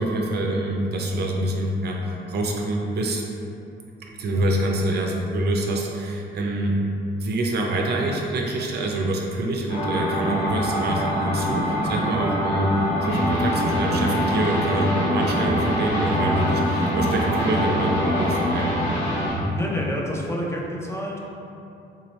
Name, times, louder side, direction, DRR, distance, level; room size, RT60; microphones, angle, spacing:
voice 1, 0.0-3.3 4.0-6.8 7.2-12.7 13.0-18.8, right 1 dB, 55° right, 0 dB, 0.5 m, -26 dB
sound 1, 9.7-19.3, equal, 55° left, 1.4 m, -25 dB
Electric guitar, 13.1-19.5, equal, 80° left, 1.3 m, -28 dB
voice 2, 19.5-21.2, equal, 15° left, -3 dB, 0.5 m, -29 dB
3.7 x 2.9 x 3.0 m, 2.8 s
cardioid pair, 90°, 20 cm